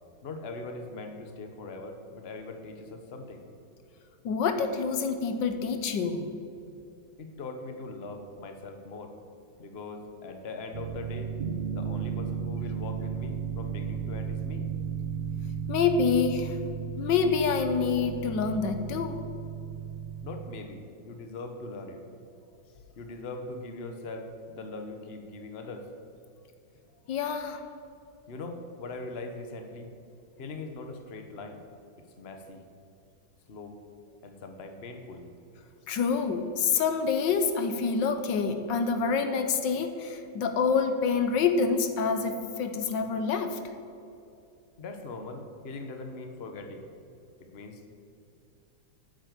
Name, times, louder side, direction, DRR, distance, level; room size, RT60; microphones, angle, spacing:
voice 1, 0.2-3.4 7.2-9.1 9.6-11.3 11.7-14.7 20.2-22.0 22.9-25.9 28.3-29.9 30.4-31.6 32.2-32.6 33.5-33.8 34.2-35.3 44.8-46.8 47.4-47.8, left 3 dB, 40° left, 5 dB, 1.3 m, -41 dB
voice 2, 4.2-6.3 15.7-16.6 17.0-19.2 27.1-27.6 35.9-43.6, left 5 dB, 80° left, 7 dB, 1.6 m, -27 dB
sound 1, 10.7-20.6, right 7 dB, 55° right, 0.5 m, -34 dB
9.4 x 8.6 x 8.3 m, 2.7 s
omnidirectional pair, 2.0 m